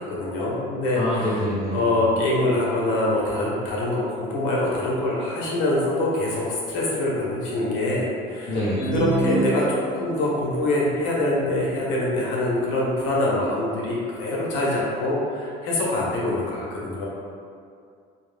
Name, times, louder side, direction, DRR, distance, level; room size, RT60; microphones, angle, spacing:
voice 1, 0.0-1.4 1.7-17.0, left 1 dB, 85° left, -4 dB, 0.7 m, -24 dB
voice 2, 0.9-1.9 8.5-8.9, left 1 dB, 35° left, -10 dB, 0.8 m, -26 dB
sound 1, 8.8-10.4, right 2 dB, 5° left, 0.5 m, -26 dB
2.3 x 2.0 x 3.2 m, 2.3 s
cardioid pair, 170°, 18 cm